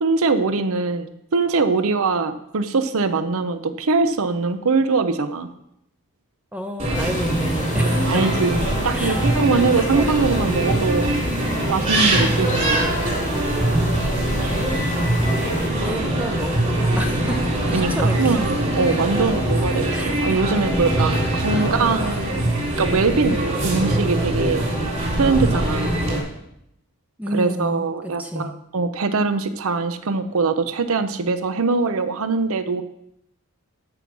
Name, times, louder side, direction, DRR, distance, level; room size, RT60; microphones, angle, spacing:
voice 1, 0.0-5.5 8.0-11.1 11.7-12.9 17.7-22.5 22.8-24.7 25.1-26.0 27.3-32.8, right 4 dB, 65° right, 10 dB, 0.7 m, -22 dB
voice 2, 6.5-8.2 8.9-9.3 9.8-10.1 15.7-17.4 17.7-18.4 19.9-20.5 27.2-28.5, right 1 dB, 5° right, 5 dB, 0.6 m, -30 dB
sound 1, 6.8-26.2, right 1 dB, 35° right, 3.6 m, -22 dB
sound 2, 6.9-15.7, left 2 dB, 35° left, 0.8 m, -33 dB
13.5 x 5.5 x 6.0 m, 0.80 s
head